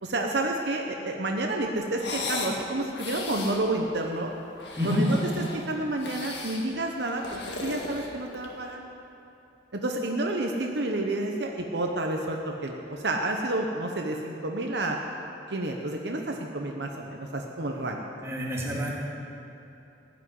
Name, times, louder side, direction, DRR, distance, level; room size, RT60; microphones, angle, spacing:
voice 1, 0.0-4.3 4.8-5.2 5.5-8.8 9.7-15.0 15.5-18.0, right 2 dB, 65° right, 1 dB, 1.0 m, -30 dB
sound 1, 1.9-2.6 2.9-3.6 4.5-5.6 6.0-6.7 7.1-8.6, left 3 dB, 70° left, 1.8 m, -36 dB
voice 2, 18.2-18.9, left 1 dB, 15° right, -5 dB, 2.5 m, -28 dB
16.0 x 6.2 x 9.5 m, 2.8 s
head